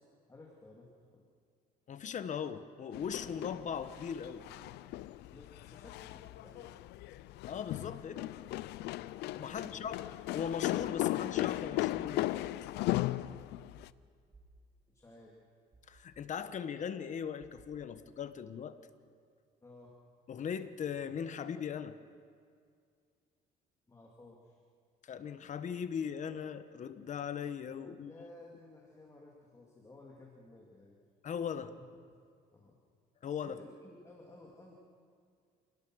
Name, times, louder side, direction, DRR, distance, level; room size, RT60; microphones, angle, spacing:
voice 1, 0.3-1.2 5.3-6.7 9.5-10.0 14.9-15.4 19.6-20.0 23.9-24.6 28.0-31.0 31.6-31.9 32.5-32.8 33.4-34.7, left 2 dB, 20° left, -2 dB, 2.9 m, -55 dB
voice 2, 1.9-4.4 7.5-8.3 9.3-10.0 10.3-12.3 15.9-18.8 20.3-22.0 25.0-28.1 31.2-31.7 33.2-33.6, left 7 dB, 45° left, 11 dB, 1.2 m, -39 dB
sound 1, 2.9-13.9, left 16 dB, 85° left, 0.6 m, -37 dB
sound 2, 13.8-14.0 14.3-14.6 15.7-16.3 17.4-18.0, right 3 dB, 20° right, 6.2 m, -61 dB
28.5 x 18.0 x 6.4 m, 2.2 s
cardioid pair, 110°, 17 cm